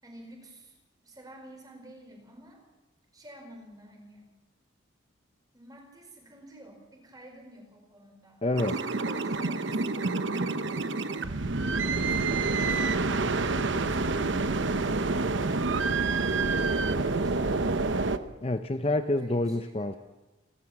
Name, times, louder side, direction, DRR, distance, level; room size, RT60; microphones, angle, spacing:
voice 1, 0.0-2.6 3.1-4.4 5.5-10.6 15.5-18.2 19.1-20.0, right 1 dB, 20° right, 2 dB, 4.7 m, -51 dB
voice 2, 8.4-8.8 18.4-20.0, left 2 dB, 30° left, 8 dB, 0.6 m, -27 dB
sound 1, 8.6-18.2, right 3 dB, 70° right, 0.9 m, -28 dB
29.0 x 13.0 x 7.2 m, 1.1 s
head